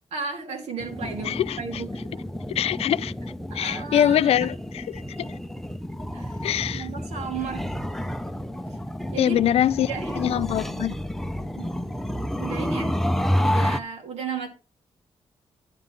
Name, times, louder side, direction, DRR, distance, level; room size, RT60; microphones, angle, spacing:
voice 1, 0.1-2.1 3.5-4.5 6.1-6.4 6.7-7.7 9.1-9.4 9.8-10.3 11.6-11.7 12.4-13.0 13.4-14.5, right 5 dB, 90° right, 2.4 m, -34 dB
sound 1, 0.8-13.8, equal, 5° left, 0.6 m, -30 dB
voice 2, 1.3-1.6 2.6-3.1 3.6-4.5 6.4-6.9 9.2-9.9 10.2-10.9, left 10 dB, 70° left, 0.4 m, -22 dB
10.5 x 3.7 x 7.4 m
cardioid pair, 95°, 11 cm